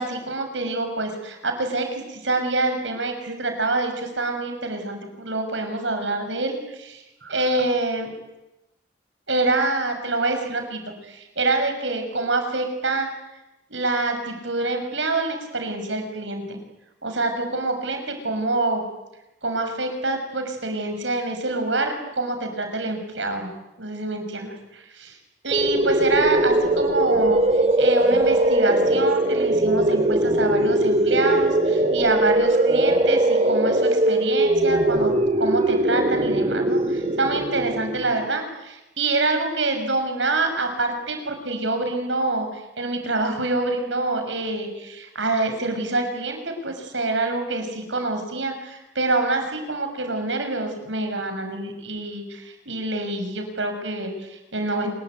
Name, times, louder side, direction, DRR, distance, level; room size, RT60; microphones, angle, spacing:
voice 1, 0.0-8.1 9.3-13.1 13.7-16.6 17.0-18.8 19.4-23.5 23.8-25.2 25.4-35.1 35.4-54.9, right 2 dB, 80° right, 5 dB, 6.5 m, -26 dB
sound 1, 25.5-38.3, right 1 dB, 35° right, 2.6 m, -20 dB
28.0 x 22.0 x 9.3 m, 0.95 s
head